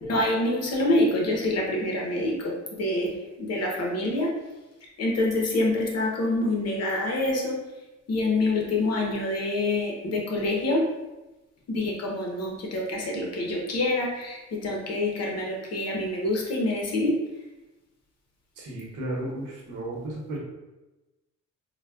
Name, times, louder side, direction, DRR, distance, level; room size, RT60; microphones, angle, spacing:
voice 1, 0.0-3.1 3.4-4.3 5.0-7.6 8.1-10.8 11.7-17.2, left 2 dB, 55° left, -1 dB, 0.9 m, -26 dB
voice 2, 18.6-20.4, right 1 dB, 85° right, -3 dB, 1.0 m, -34 dB
3.9 x 2.2 x 2.3 m, 1.1 s
cardioid pair, 90°, 30 cm